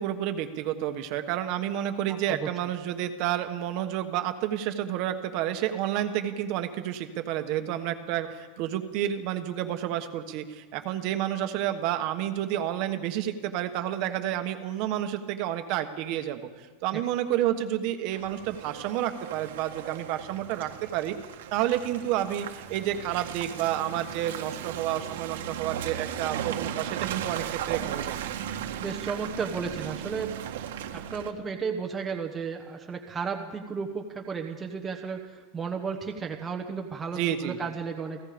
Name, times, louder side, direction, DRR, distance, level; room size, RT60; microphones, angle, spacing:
voice 1, 0.0-21.1 21.5-28.2 37.1-37.6, right 11 dB, 40° right, 7 dB, 1.4 m, -30 dB
Car passing by / Engine, 18.1-31.3, right 10 dB, 80° right, 1.9 m, -36 dB
voice 2, 28.8-30.3 30.9-38.2, right 5 dB, 10° right, 2 dB, 1.1 m, -33 dB
29.5 x 18.0 x 5.2 m, 1.4 s
supercardioid pair, 180°, 0 cm